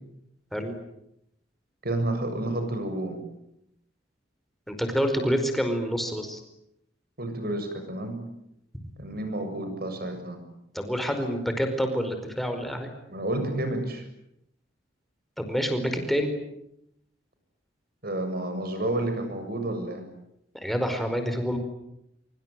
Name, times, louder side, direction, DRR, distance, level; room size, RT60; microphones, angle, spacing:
voice 1, 1.8-3.2 7.2-8.2 9.0-10.4 13.1-14.0 18.0-20.0, right 1 dB, 55° right, 7 dB, 7.4 m, -30 dB
voice 2, 4.7-6.4 10.7-12.9 15.4-16.3 20.6-21.6, equal, ahead, 6 dB, 4.9 m, -27 dB
25.0 x 25.0 x 9.3 m, 0.80 s
head